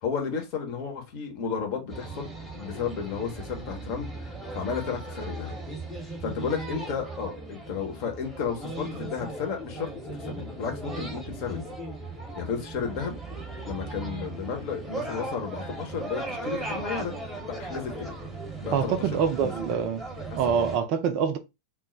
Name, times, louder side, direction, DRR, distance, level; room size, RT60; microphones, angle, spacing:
voice 1, 0.0-2.3 2.5-5.5 6.2-9.9 10.2-11.7 12.4-13.2 13.6-17.1 17.6-18.2 18.6-19.1 19.4-19.5 20.3-20.6, left 6 dB, 45° left, 0.8 m, -33 dB
sound 1, 1.9-20.8, right 2 dB, 10° right, 0.9 m, -37 dB
voice 2, 18.7-20.0 20.3-21.4, right 7 dB, 45° right, 0.4 m, -25 dB
2.1 x 2.1 x 3.7 m
figure-of-eight pair, 90°, 0 cm